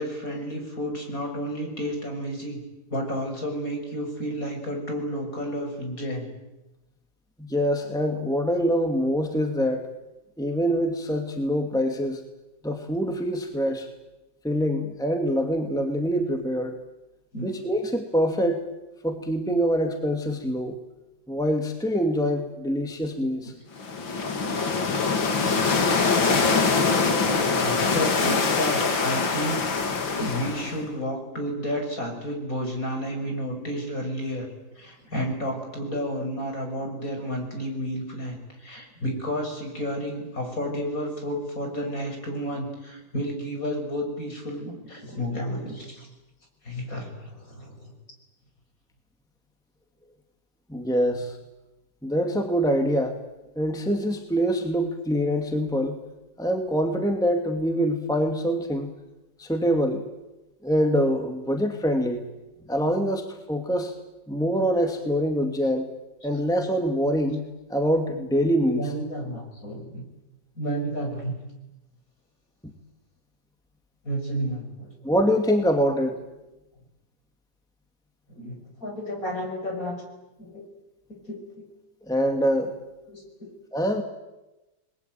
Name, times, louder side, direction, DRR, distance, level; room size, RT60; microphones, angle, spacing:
voice 1, 0.0-2.6 2.9-6.3 17.3-17.5 27.6-29.7 30.1-34.5 34.8-46.1 46.6-47.9 68.7-70.0 70.6-71.4 74.0-74.9 78.3-80.0 80.4-80.6 81.3-81.6 83.1-83.2, equal, 45° left, 3 dB, 6.8 m, -31 dB
voice 2, 7.4-9.9 10.4-12.2 12.6-13.9 14.4-16.8 17.4-18.6 19.0-20.8 21.3-23.5 24.9-25.2 50.7-51.4 52.0-53.2 53.6-56.0 56.4-58.9 59.4-60.0 60.6-62.2 62.7-63.9 64.3-65.9 66.2-67.4 67.7-68.9 75.0-76.2 82.1-82.8 83.7-84.0, equal, ahead, 4 dB, 2.3 m, -25 dB
sound 1, 23.8-30.8, left 4 dB, 75° left, 3.1 m, -23 dB
29.5 x 21.5 x 9.3 m, 1.0 s
omnidirectional pair, 2.1 m